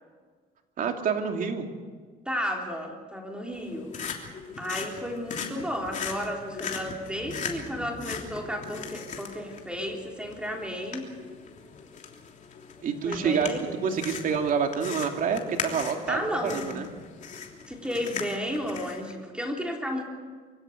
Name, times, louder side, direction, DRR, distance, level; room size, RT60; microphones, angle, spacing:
voice 1, 0.8-1.7 12.8-13.5 13.8-16.2 16.5-16.9, right 6 dB, 55° right, 4 dB, 2.7 m, -27 dB
voice 2, 2.3-3.9 4.6-11.0 13.0-13.8 16.1-16.8 17.7-20.0, equal, 5° right, 1 dB, 3.6 m, -33 dB
sound 1, 3.5-19.1, left 6 dB, 45° left, 3.2 m, -39 dB
24.5 x 16.0 x 8.1 m, 1.5 s
cardioid pair, 110°, 17 cm